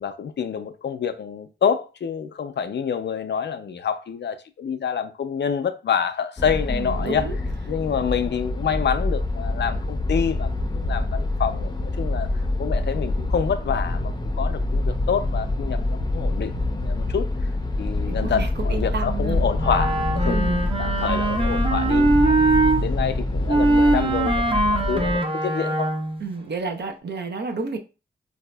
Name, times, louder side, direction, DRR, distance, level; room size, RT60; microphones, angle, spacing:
voice 1, 0.0-7.3 7.7-12.3 12.6-17.3 17.8-20.4 20.8-22.4 22.8-25.9, left 7 dB, 65° left, 0.4 m, -27 dB
sound 1, 6.4-25.2, left 2 dB, 20° left, 0.6 m, -26 dB
voice 2, 6.7-7.4 18.1-19.4 20.2-20.6 26.2-27.8, right 4 dB, 60° right, 0.7 m, -30 dB
Wind instrument woodwind instrument, 19.6-22.8 23.5-26.2, right 2 dB, 25° right, 0.7 m, -21 dB
4.0 x 2.7 x 2.2 m
cardioid pair, 55°, 19 cm